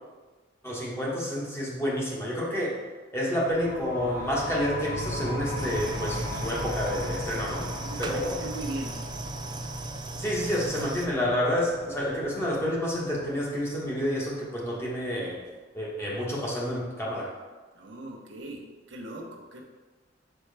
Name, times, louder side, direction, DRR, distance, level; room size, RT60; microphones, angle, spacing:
voice 1, 0.6-2.8 3.1-7.7 8.0-8.4 10.2-15.4 15.7-17.3, equal, 15° left, -5 dB, 1.3 m, -29 dB
sound 1, 3.5-14.9, left 1 dB, 80° left, 1.4 m, -37 dB
sound 2, 5.6-11.1, right 3 dB, 25° right, 0.4 m, -37 dB
voice 2, 7.8-9.0 17.7-19.6, right 2 dB, 70° right, 0 dB, 0.9 m, -39 dB
7.0 x 4.5 x 3.4 m, 1.3 s
head